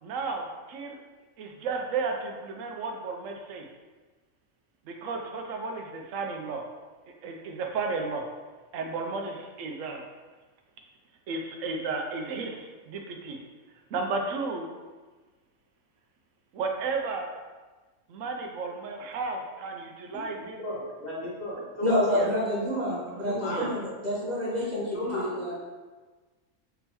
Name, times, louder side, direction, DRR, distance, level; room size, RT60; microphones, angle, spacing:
voice 1, 0.0-1.0 1.4-3.7 4.8-6.7 7.0-8.3 8.7-10.0 11.3-13.4 13.9-14.7 16.5-17.3 18.1-20.6 22.1-22.3 23.1-23.7, right 4 dB, 80° right, 3 dB, 0.9 m, -33 dB
voice 2, 20.6-22.0 23.2-23.6 24.9-25.2, left 1 dB, 75° left, -8 dB, 1.9 m, -35 dB
voice 3, 21.8-25.6, left 1 dB, 40° right, -7 dB, 0.9 m, -28 dB
3.9 x 3.7 x 2.9 m, 1.3 s
omnidirectional pair, 1.4 m